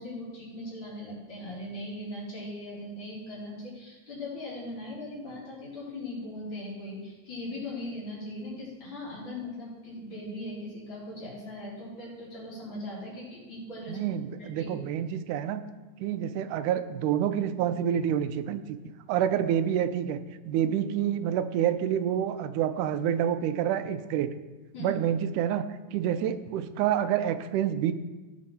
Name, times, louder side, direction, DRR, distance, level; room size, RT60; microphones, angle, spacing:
voice 1, 0.0-14.0 14.4-14.8 16.0-16.1 20.5-20.6 24.7-25.0, left 1 dB, 40° left, -7 dB, 4.6 m, -39 dB
voice 2, 13.9-15.6 16.0-18.6 19.1-20.2 20.5-24.3 24.8-25.7 25.9-27.9, right 10 dB, 90° right, 10 dB, 2.2 m, -28 dB
17.5 x 6.3 x 4.3 m, 1.2 s
omnidirectional pair, 3.5 m